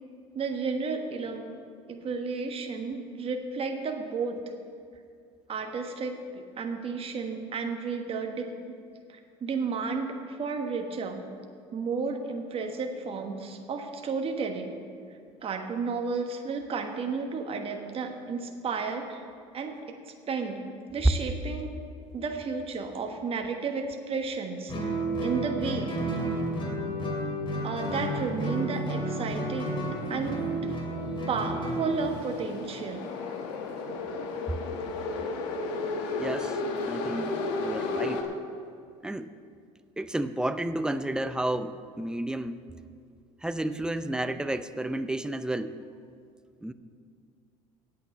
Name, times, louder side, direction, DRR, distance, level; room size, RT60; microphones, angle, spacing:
voice 1, 0.3-1.5 1.9-4.4 5.5-8.5 9.1-11.2 11.7-14.7 15.4-19.2 19.5-20.0 20.3-20.6 20.9-21.7 22.1-25.9 27.6-29.7 30.1-30.7 31.3-33.1, right 4 dB, 40° right, 4 dB, 1.3 m, -32 dB
Guitar, 24.7-32.2, right 1 dB, 35° left, 2.7 m, -31 dB
sound 1, 27.6-38.2, left 3 dB, 80° left, 1.3 m, -35 dB
voice 2, 36.2-36.6 36.9-38.4 39.0-39.3 40.0-42.7 43.4-45.8 46.6-46.7, right 1 dB, 5° right, 12 dB, 0.5 m, -31 dB
8.7 x 8.3 x 8.3 m, 2.3 s
supercardioid pair, 90°, 15 cm